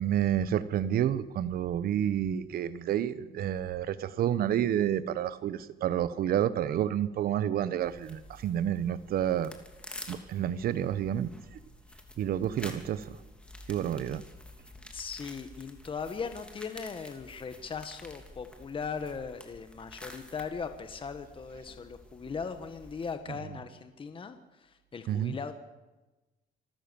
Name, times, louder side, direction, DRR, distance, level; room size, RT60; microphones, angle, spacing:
voice 1, 0.0-9.5 10.1-11.6 12.2-13.2 13.7-14.2 23.4-23.6 25.1-25.4, right 10 dB, 60° right, 1.1 m, -29 dB
sound 1, 7.8-23.2, left 1 dB, 5° left, 3.2 m, -50 dB
voice 2, 14.9-25.5, left 5 dB, 30° left, 1.5 m, -39 dB
26.5 x 13.5 x 7.1 m
cardioid pair, 110°, 17 cm